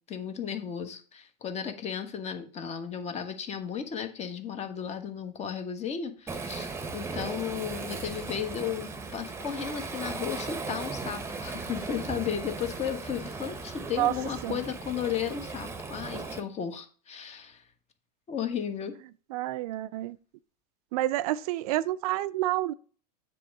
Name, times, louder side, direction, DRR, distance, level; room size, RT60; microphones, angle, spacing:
voice 1, 0.1-17.6 18.3-19.0, left 8 dB, 30° left, 1.3 m, -34 dB
Waves surf, 6.3-16.4, right 4 dB, 10° right, 0.9 m, -37 dB
voice 2, 19.3-20.2 20.9-22.7, right 15 dB, 60° right, 0.5 m, -28 dB
7.6 x 3.6 x 6.4 m
hypercardioid pair, 110°, 21 cm